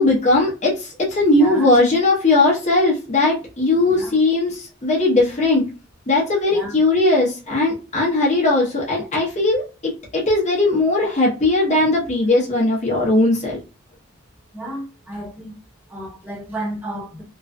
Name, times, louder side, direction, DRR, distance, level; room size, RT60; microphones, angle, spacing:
voice 1, 0.0-5.6 6.1-13.6, left 2 dB, 35° left, 0.7 m, -18 dB
voice 2, 1.3-1.7 3.9-4.1 6.5-6.8 14.5-15.5 15.9-17.2, right 1 dB, 10° right, 0.9 m, -32 dB
2.4 x 2.2 x 2.4 m
head